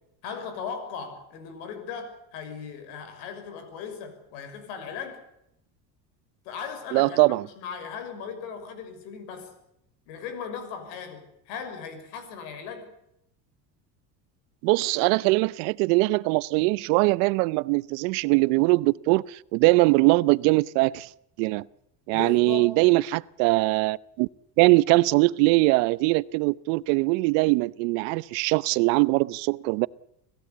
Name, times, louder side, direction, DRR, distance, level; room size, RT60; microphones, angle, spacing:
voice 1, 0.2-5.2 6.4-9.5 10.1-12.9 22.1-22.8, left 6 dB, 80° left, 6.0 m, -38 dB
voice 2, 6.9-7.4 14.6-21.1 21.4-21.6 22.1-24.3 24.6-29.9, right 23 dB, 75° right, 0.8 m, -22 dB
26.5 x 16.0 x 8.4 m
supercardioid pair, 100°, 50 cm